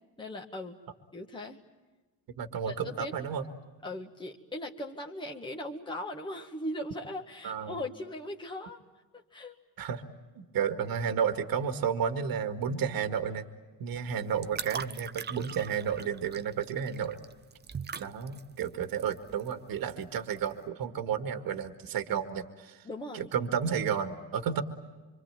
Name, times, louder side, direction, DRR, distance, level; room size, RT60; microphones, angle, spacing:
voice 1, 0.2-0.8 1.1-1.6 2.6-3.1 3.8-8.8 9.1-9.6 22.8-23.3, left 1 dB, 10° left, 1 dB, 1.7 m, -39 dB
voice 2, 2.4-3.5 7.4-7.8 9.8-10.0 10.4-13.5 13.8-17.2 18.0-22.9 23.1-24.6, right 7 dB, 60° right, 8 dB, 2.0 m, -32 dB
sound 1, 13.9-20.6, right 6 dB, 25° right, 0.8 m, -43 dB
26.0 x 25.0 x 9.0 m, 1.3 s
cardioid pair, 100°, 39 cm